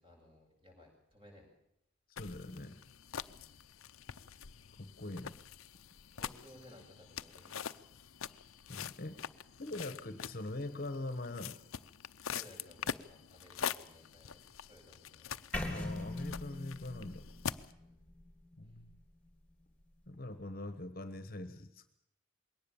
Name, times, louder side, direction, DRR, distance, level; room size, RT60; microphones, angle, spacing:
voice 1, 0.0-1.5 3.3-3.6 6.1-7.8 12.3-15.4 17.8-18.0, left 1 dB, 25° right, 1 dB, 7.8 m, -59 dB
voice 2, 2.1-2.8 4.8-5.4 8.7-9.2 9.6-11.6 15.6-17.2 18.6-19.0 20.1-21.9, left 2 dB, 45° left, 10 dB, 1.3 m, -42 dB
sound 1, 2.2-17.7, left 8 dB, 85° left, 0.7 m, -45 dB
sound 2, 15.5-19.5, left 2 dB, 5° left, 3.1 m, -42 dB
21.5 x 18.0 x 7.1 m, 0.80 s
head